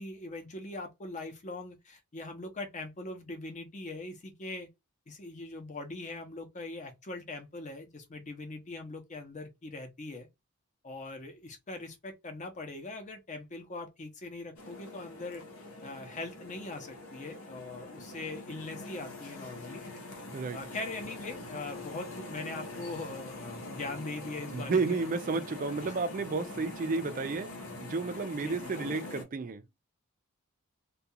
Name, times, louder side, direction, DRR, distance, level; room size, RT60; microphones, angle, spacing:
voice 1, 0.0-4.7 5.1-10.3 10.8-15.4 15.8-19.8 20.5-25.0 25.8-26.0 28.4-28.7, left 2 dB, 35° left, 0.6 m, -41 dB
sound 1, 14.6-29.2, left 2 dB, 75° left, 0.8 m, -44 dB
voice 2, 24.5-27.5 27.8-29.6, right 4 dB, 40° right, 0.4 m, -32 dB
2.3 x 2.3 x 2.6 m
head